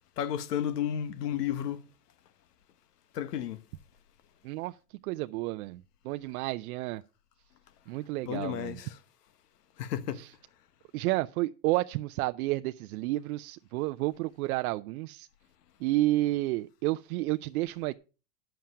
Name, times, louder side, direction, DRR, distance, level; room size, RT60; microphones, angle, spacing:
voice 1, 0.2-1.8 3.1-3.6 8.2-9.0 9.8-10.2, left 10 dB, 85° left, 1.2 m, -32 dB
voice 2, 5.0-7.0 7.9-8.8 10.2-10.3 10.9-15.3 15.8-17.9, right 18 dB, 65° right, 0.6 m, -31 dB
10.5 x 7.7 x 5.6 m
supercardioid pair, 120°, 46 cm